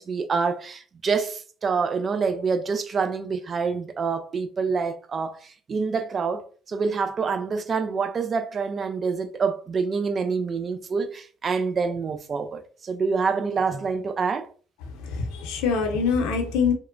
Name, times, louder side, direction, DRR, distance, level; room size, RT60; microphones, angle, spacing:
voice 1, 0.0-14.5, right 5 dB, 40° right, 0.4 m, -26 dB
voice 2, 14.9-16.7, left 5 dB, 85° left, 0.7 m, -24 dB
2.9 x 2.1 x 2.5 m
supercardioid pair, 85°, 0 cm